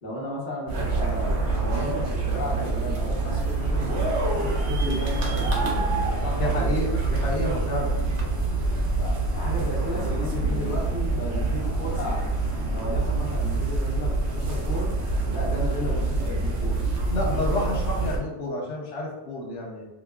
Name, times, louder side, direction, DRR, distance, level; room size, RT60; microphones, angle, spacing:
voice 1, 0.0-3.9 4.3-5.9 6.2-6.8 9.0-12.3 12.7-14.9 15.3-16.8 18.0-18.2, left 1 dB, 45° left, -5 dB, 1.1 m, -34 dB
sound 1, 0.7-18.2, right 3 dB, 75° right, 1.0 m, -26 dB
voice 2, 6.4-7.9 17.1-19.9, left 1 dB, 90° left, -2 dB, 1.1 m, -29 dB
5.1 x 2.0 x 2.3 m, 0.98 s
omnidirectional pair, 1.2 m